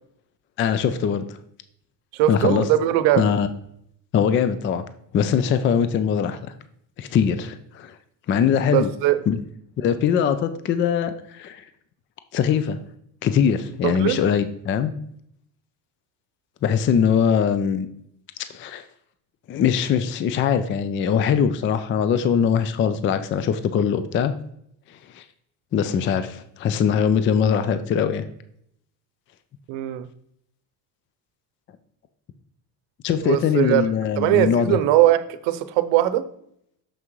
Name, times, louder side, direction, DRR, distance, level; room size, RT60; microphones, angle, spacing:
voice 1, 0.6-1.4 2.3-2.7 3.2-3.5 4.1-4.8 5.1-6.4 7.0-8.0 8.3-8.9 9.3-9.4 9.8-11.6 12.3-12.8 13.2-14.9 16.6-17.9 18.5-18.8 19.5-24.3 24.9-25.2 25.7-28.2 33.0-34.8, left 7 dB, 30° left, 11 dB, 0.4 m, -21 dB
voice 2, 2.1-3.3 8.7-9.2 13.8-14.2 29.7-30.1 33.2-33.8 34.2-36.2, right 13 dB, 75° right, 12 dB, 0.8 m, -20 dB
6.7 x 5.9 x 3.1 m, 0.71 s
cardioid pair, 120°, 44 cm